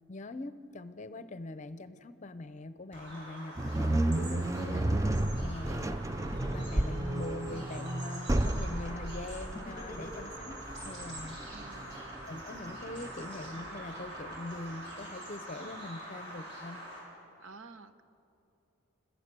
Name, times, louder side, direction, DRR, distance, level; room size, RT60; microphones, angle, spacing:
voice 1, 0.1-5.1 5.4-6.0 6.5-11.4 12.3-16.8, left 2 dB, 35° left, 12 dB, 0.7 m, -43 dB
Bird vocalization bird call bird song, 2.9-17.0, right 1 dB, 55° right, 6.9 m, -45 dB
sound 1, 3.6-14.7, right 1 dB, 15° right, 0.4 m, -33 dB
Laughter, 6.3-7.8 9.5-10.7, left 1 dB, 15° left, 1.5 m, -46 dB
voice 2, 11.5-12.0 17.4-18.0, right 4 dB, 80° right, 11 dB, 0.9 m, -51 dB
30.0 x 14.5 x 6.8 m, 2.8 s
head